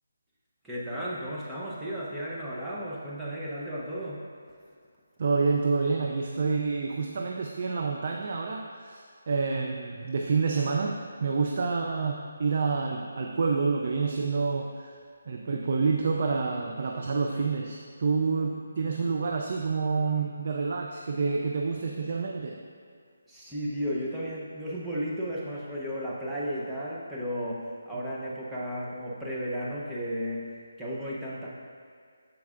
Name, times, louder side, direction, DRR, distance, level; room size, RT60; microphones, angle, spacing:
voice 1, 0.6-4.2 23.3-30.5 30.8-31.5, equal, 5° right, -8 dB, 0.8 m, -34 dB
voice 2, 5.2-14.9 15.3-22.6, right 4 dB, 45° right, 1 dB, 0.5 m, -28 dB
13.5 x 4.7 x 2.5 m, 2.1 s
hypercardioid pair, 165°, 0 cm